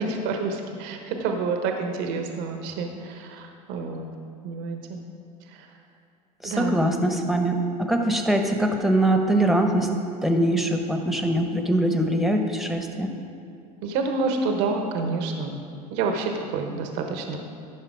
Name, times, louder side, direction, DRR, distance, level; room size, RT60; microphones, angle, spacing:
voice 1, 0.0-4.1 4.4-5.0 5.5-5.7 6.4-6.8 13.8-15.6 15.9-17.4, right 4 dB, 65° right, 4 dB, 1.1 m, -28 dB
voice 2, 6.4-9.9 10.2-13.1, right 1 dB, ahead, 4 dB, 1.1 m, -22 dB
13.5 x 5.6 x 4.8 m, 2.5 s
hypercardioid pair, 80°, 20 cm